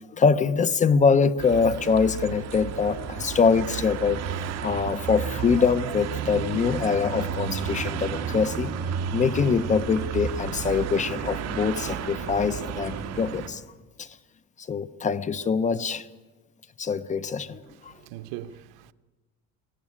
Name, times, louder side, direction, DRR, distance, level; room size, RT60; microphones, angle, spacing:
voice 1, 0.1-4.2 4.6-8.7 9.1-13.6 14.0-14.1 14.7-16.1 16.8-17.9, left 5 dB, 25° left, 0.7 m, -24 dB
sound 1, 1.4-13.5, right 8 dB, 50° right, 2.0 m, -32 dB
voice 2, 17.7-18.9, right 13 dB, 85° right, 0.9 m, -41 dB
23.5 x 16.5 x 9.9 m
cardioid pair, 150°, 32 cm